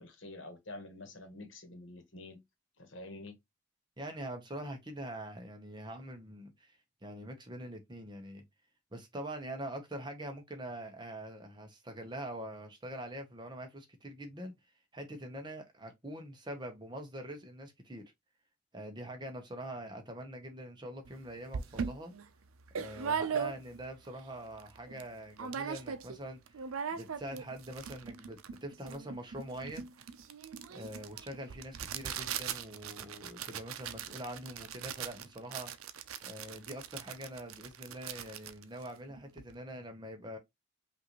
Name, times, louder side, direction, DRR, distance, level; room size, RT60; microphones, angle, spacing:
voice 1, 0.0-2.4 2.8-3.4, left 2 dB, 65° left, 1.2 m, -47 dB
voice 2, 4.0-8.4 8.9-14.5 14.9-18.0 18.7-22.1 22.7-29.9 30.7-35.7 36.2-40.4, right 1 dB, 20° right, 0.8 m, -44 dB
sound 1, 21.1-21.2 21.5-23.9 24.3-24.4 24.6-25.1 25.4-26.2 26.5-39.5, right 7 dB, 85° right, 0.5 m, -40 dB
5.5 x 2.6 x 2.9 m
head